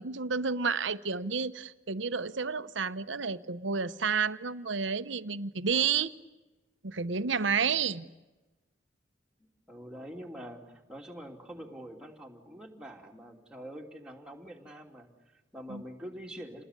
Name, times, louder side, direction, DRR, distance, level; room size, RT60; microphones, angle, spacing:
voice 1, 0.0-6.1 6.8-8.1 15.7-15.8, right 5 dB, 75° right, 1.0 m, -30 dB
voice 2, 7.4-7.7 9.7-16.6, equal, 5° right, 2.9 m, -45 dB
29.0 x 20.0 x 9.8 m
head